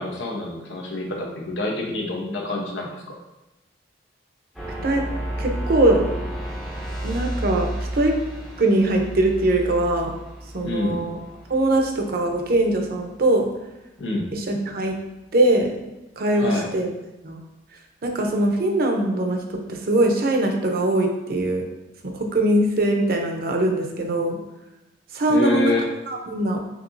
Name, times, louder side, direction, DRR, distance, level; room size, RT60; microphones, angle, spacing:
voice 1, 0.0-3.0 10.6-11.0 14.0-14.3 16.4-16.7 25.3-25.9, left 2 dB, 85° left, -1 dB, 0.9 m, -26 dB
sound 1, 4.5-13.1, right 1 dB, 5° left, 0.6 m, -32 dB
voice 2, 5.4-6.0 7.0-8.2 8.6-10.1 10.5-11.2 11.5-13.5 14.3-15.0 15.3-15.7 16.2-16.9 17.2-17.4 18.0-21.6 22.0-24.4 25.1-25.7 26.1-26.6, right 1 dB, 55° right, 2 dB, 0.6 m, -21 dB
5.9 x 2.9 x 2.6 m, 0.98 s
head